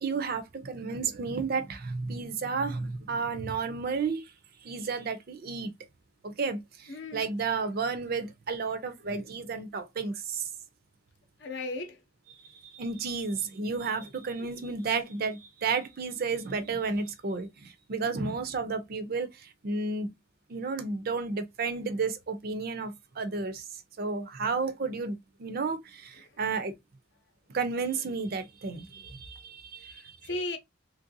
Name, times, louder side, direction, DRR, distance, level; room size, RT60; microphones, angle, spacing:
voice 1, 0.0-4.2 4.6-5.7 6.2-10.5 12.7-20.1 20.5-23.6 24.0-25.1 25.4-26.7 27.5-30.1, right 4 dB, 50° right, 0.5 m, -32 dB
voice 2, 6.9-7.3 11.4-12.0 14.4-14.6 29.8-30.6, left 2 dB, 60° left, 0.7 m, -36 dB
3.2 x 2.6 x 2.6 m
head